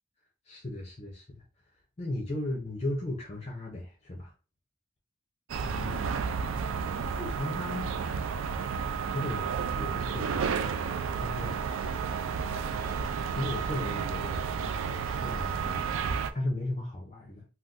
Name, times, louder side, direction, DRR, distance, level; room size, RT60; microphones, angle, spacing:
voice 1, 0.5-1.4 2.0-4.3 5.6-6.1 7.2-7.9 9.1-9.5 9.7-11.8 13.3-17.5, left 1 dB, 30° left, 0.6 m, -36 dB
sound 1, 5.5-16.3, right 6 dB, 75° right, 0.3 m, -31 dB
2.5 x 2.3 x 3.6 m
head